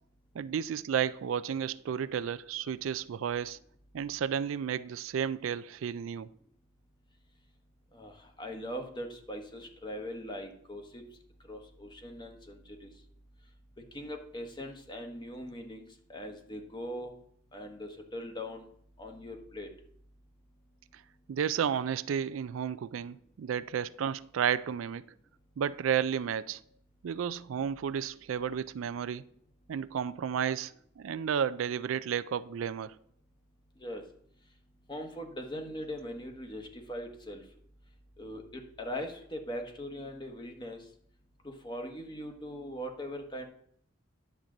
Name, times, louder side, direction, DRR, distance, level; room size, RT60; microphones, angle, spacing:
voice 1, 0.3-3.6 3.9-6.3 21.3-25.0 25.6-26.6 27.0-29.2 29.7-33.0, right 8 dB, 80° right, 0.4 m, -32 dB
voice 2, 7.9-11.0 11.5-12.9 13.9-17.1 17.5-18.7 19.0-19.7 33.8-34.0 34.9-37.4 38.2-40.8 41.4-43.5, equal, 25° left, 1.2 m, -41 dB
10.5 x 7.4 x 3.8 m
head